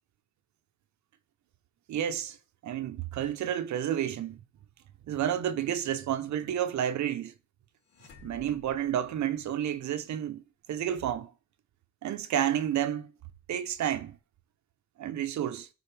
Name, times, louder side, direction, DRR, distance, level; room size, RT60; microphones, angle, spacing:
voice 1, 1.9-2.4 2.6-4.4 5.1-7.3 8.2-10.4 10.7-11.3 12.0-13.1 13.5-14.2 15.0-15.7, right 10 dB, 70° right, 0.9 m, -30 dB
sound 1, 7.8-9.9, left 2 dB, 55° left, 3.4 m, -54 dB
13.0 x 4.4 x 3.4 m
cardioid pair, 90°, 30 cm